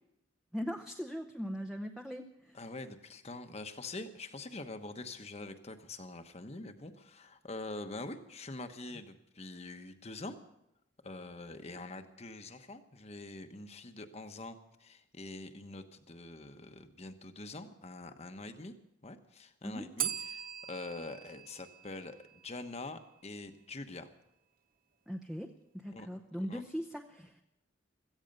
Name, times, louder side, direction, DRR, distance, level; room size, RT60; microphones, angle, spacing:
voice 1, 0.5-2.6 19.6-19.8 25.1-27.4, equal, ahead, 4 dB, 0.7 m, -40 dB
voice 2, 2.5-10.4 11.0-18.7 19.0-24.1 25.9-26.1 26.5-26.6, left 2 dB, 35° left, 8 dB, 1.1 m, -45 dB
Bell, 20.0-22.8, right 10 dB, 50° right, 0.8 m, -41 dB
16.5 x 15.0 x 5.4 m, 0.83 s
head